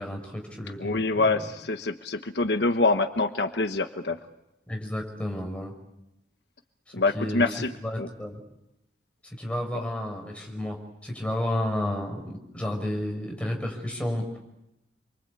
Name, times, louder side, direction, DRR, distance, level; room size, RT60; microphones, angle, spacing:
voice 1, 0.0-1.5 4.7-5.7 7.1-7.5 7.8-8.4 9.4-10.8 11.0-14.2, left 1 dB, 5° left, 2 dB, 5.8 m, -31 dB
voice 2, 0.8-4.2 6.9-7.7 8.0-8.1, left 3 dB, 65° left, 8 dB, 1.2 m, -25 dB
29.0 x 24.0 x 8.4 m, 0.88 s
head